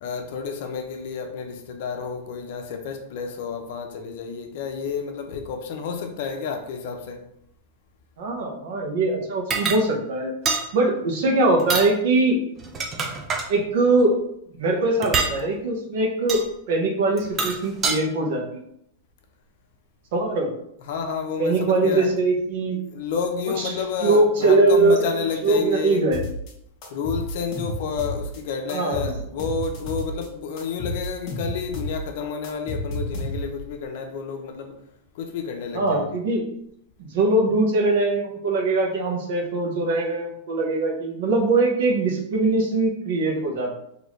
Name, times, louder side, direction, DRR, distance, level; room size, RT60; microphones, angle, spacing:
voice 1, 0.0-7.2 20.9-22.1 22.9-26.1 26.9-34.8 35.1-36.2, left 5 dB, 60° left, 4 dB, 0.7 m, -30 dB
voice 2, 8.2-12.4 13.5-14.1 14.6-16.4 16.7-18.4 20.1-20.5 21.4-22.8 23.6-23.7 24.0-25.0 25.4-26.2 28.7-29.1 35.7-36.4 37.0-43.7, right 2 dB, 65° right, 1 dB, 1.0 m, -21 dB
sound 1, 9.5-9.8 10.5-10.7 11.6-11.9 12.6-13.5 15.0-15.4 16.3-16.5 17.2-18.0, right 4 dB, 20° right, 0.5 m, -25 dB
sound 2, 26.1-26.5 26.8-28.4 28.7-30.3 30.6-33.7, left 1 dB, 35° left, 1.1 m, -31 dB
4.0 x 2.9 x 3.1 m, 0.75 s
supercardioid pair, 150°, 0 cm